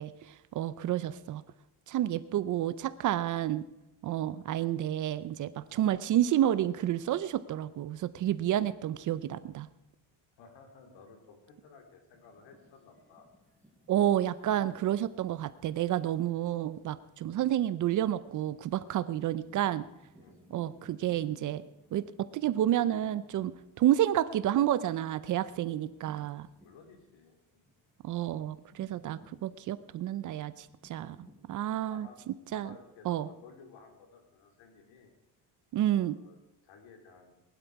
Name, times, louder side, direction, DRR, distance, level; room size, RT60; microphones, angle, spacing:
voice 1, 0.0-1.4 1.9-3.7 4.0-9.7 13.9-19.9 20.5-21.6 21.9-22.0 22.3-26.5 28.0-31.2 31.5-32.7 33.1-33.3 35.7-36.2, right 12 dB, 45° right, 15 dB, 0.5 m, -30 dB
voice 2, 10.4-13.3 20.2-20.4 26.6-27.6 31.6-32.2 32.5-35.1 35.9-36.4 36.6-37.3, left 5 dB, 75° left, 4 dB, 3.4 m, -55 dB
sound 1, 12.1-27.3 27.6-31.5, equal, 5° left, 5.2 m, -61 dB
20.0 x 11.5 x 4.7 m, 0.93 s
cardioid pair, 165°, 45 cm